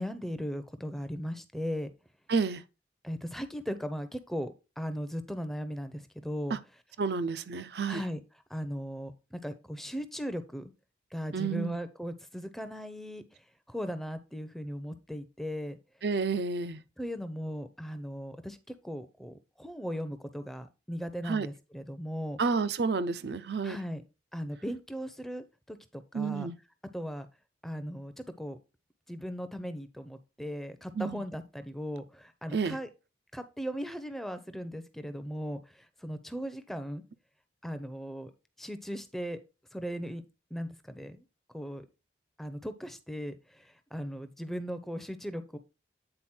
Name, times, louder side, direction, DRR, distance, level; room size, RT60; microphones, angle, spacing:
voice 1, 0.0-1.9 3.0-6.6 7.9-8.2 8.5-10.7 11.1-13.2 13.7-15.8 17.0-22.4 23.6-24.0 24.3-26.5 26.9-27.3 27.6-28.1 28.4-28.6 29.1-32.9 33.3-37.0 37.6-38.3 38.6-39.4 39.7-40.2 40.5-41.2 41.5-41.9 42.4-45.6, equal, ahead, 0.6 m, -38 dB
voice 2, 2.3-2.6 6.5-6.6 7.0-8.0 11.3-11.8 16.0-16.8 21.3-21.5 22.4-23.8 26.1-26.5 31.0-31.2 32.5-32.8, right 4 dB, 65° right, 0.5 m, -30 dB
8.8 x 4.1 x 4.3 m
head